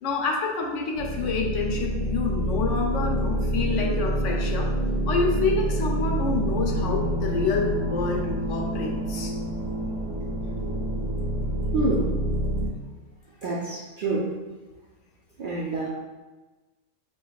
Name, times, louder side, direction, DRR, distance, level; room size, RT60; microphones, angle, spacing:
voice 1, 0.0-4.7 5.1-9.3, left 3 dB, 70° left, 1 dB, 0.9 m, -28 dB
sound 1, 0.9-12.7, right 1 dB, 85° right, 1.0 m, -27 dB
voice 2, 11.7-12.1 13.4-14.3 15.4-15.9, right 2 dB, 65° right, -5 dB, 0.5 m, -27 dB
5.4 x 2.3 x 2.3 m, 1.2 s
omnidirectional pair, 1.3 m